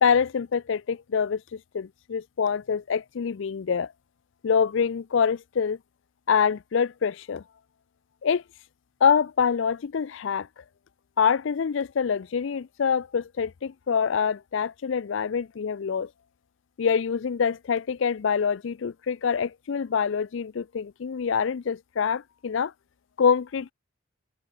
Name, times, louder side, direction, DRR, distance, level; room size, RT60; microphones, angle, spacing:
voice 1, 0.0-3.9 4.4-5.8 6.3-7.4 8.2-8.4 9.0-10.5 11.2-16.1 16.8-22.7 23.2-23.7, left 6 dB, 60° left, 0.4 m, -25 dB
head